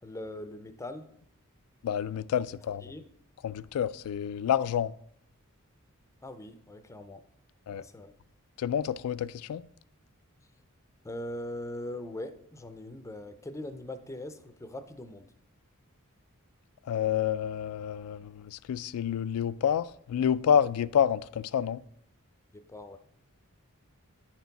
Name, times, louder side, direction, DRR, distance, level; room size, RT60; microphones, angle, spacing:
voice 1, 0.0-1.1 2.8-3.0 6.2-7.2 7.7-8.1 11.0-15.3 22.5-23.0, left 1 dB, 15° left, 0.5 m, -41 dB
voice 2, 1.8-2.8 3.4-4.9 7.7-7.8 8.6-9.6 16.9-21.8, left 8 dB, 80° left, 0.3 m, -28 dB
10.0 x 4.4 x 4.0 m
head